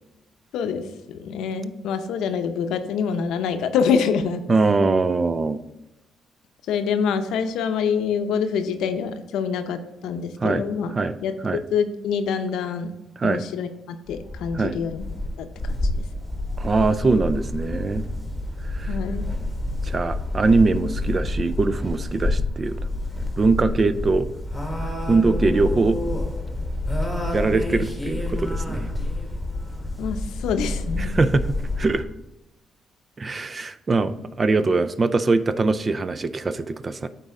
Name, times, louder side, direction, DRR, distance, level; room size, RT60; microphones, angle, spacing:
voice 1, 0.5-4.4 6.7-10.9 11.2-11.3 11.7-12.9 13.2-15.0 15.4-15.7 18.9-19.2 30.0-31.2, left 6 dB, 85° left, 8 dB, 0.6 m, -26 dB
voice 2, 4.5-5.6 10.4-10.6 10.9-11.1 11.4-11.6 13.2-13.4 14.5-14.8 16.6-18.0 18.7-19.0 19.8-22.8 23.4-24.3 25.1-26.0 27.3-28.9 31.0-31.5 31.8-32.0 33.2-37.1, right 3 dB, 35° right, 13 dB, 0.4 m, -22 dB
sound 1, 14.1-32.0, left 2 dB, ahead, 1.4 m, -28 dB
9.1 x 4.1 x 3.7 m, 0.97 s
cardioid pair, 90°, 0 cm